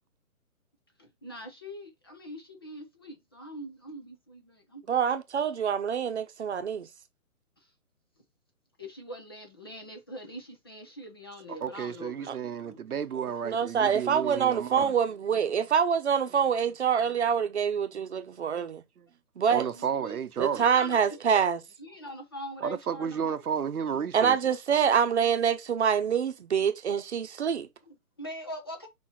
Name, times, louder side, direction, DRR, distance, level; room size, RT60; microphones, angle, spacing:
voice 1, 1.0-5.2 8.8-12.8 19.6-20.2 20.5-21.4 21.8-23.4 27.9-28.9, equal, 15° left, 0.7 m, -43 dB
voice 2, 4.9-6.9 12.3-12.4 13.1-18.8 19.4-19.7 20.4-21.6 24.1-27.7, right 7 dB, 50° right, 1.0 m, -26 dB
voice 3, 11.5-14.9 18.4-18.7 19.5-20.6 22.6-24.4, right 7 dB, 80° right, 1.0 m, -32 dB
5.6 x 4.2 x 4.2 m
hypercardioid pair, 165°, 44 cm